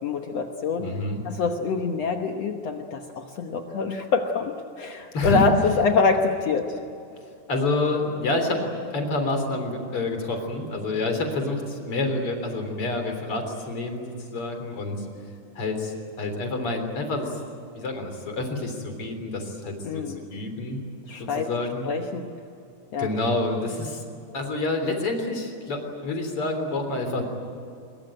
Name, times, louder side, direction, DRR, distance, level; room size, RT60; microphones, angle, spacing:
voice 1, 0.0-0.9 1.2-6.8 19.8-20.2 21.1-21.5 21.8-22.3 22.9-23.1, left 4 dB, 60° left, 4 dB, 2.1 m, -25 dB
voice 2, 0.8-1.2 5.1-5.4 7.5-8.6 8.9-15.0 15.6-17.3 17.7-20.0 20.3-20.8 21.2-21.9 23.0-24.0 24.3-27.2, left 2 dB, 45° left, 5 dB, 4.3 m, -28 dB
24.0 x 22.5 x 9.0 m, 2.6 s
omnidirectional pair, 3.6 m